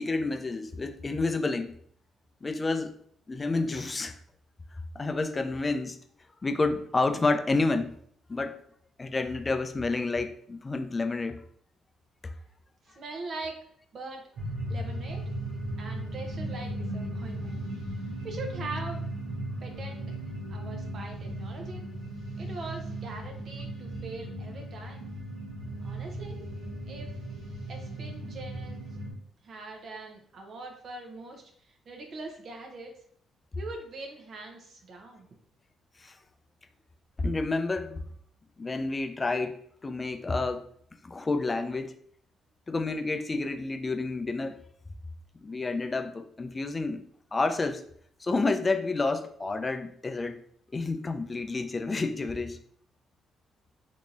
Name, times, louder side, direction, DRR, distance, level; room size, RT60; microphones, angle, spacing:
voice 1, 0.0-1.8 2.4-2.9 3.3-4.1 4.9-6.0 6.4-7.9 8.3-8.6 9.0-11.4 36.0-36.1 37.2-38.0 38.6-40.6 41.0-41.9 42.7-44.6 45.4-47.0 47.3-47.8 48.2-50.4 50.7-52.6, left 3 dB, 30° left, 8 dB, 0.4 m, -29 dB
voice 2, 12.8-13.6 13.9-14.2 14.7-15.2 15.8-17.6 18.2-19.0 19.6-20.1 20.5-21.8 22.4-25.1 25.8-26.4 26.9-27.1 27.7-28.8 29.4-32.9 33.5-35.3, right 3 dB, 60° right, 3 dB, 0.8 m, -42 dB
sound 1, 14.4-29.1, right 1 dB, 75° right, 1.2 m, -37 dB
3.6 x 2.9 x 2.6 m, 0.63 s
hypercardioid pair, 50°, 0 cm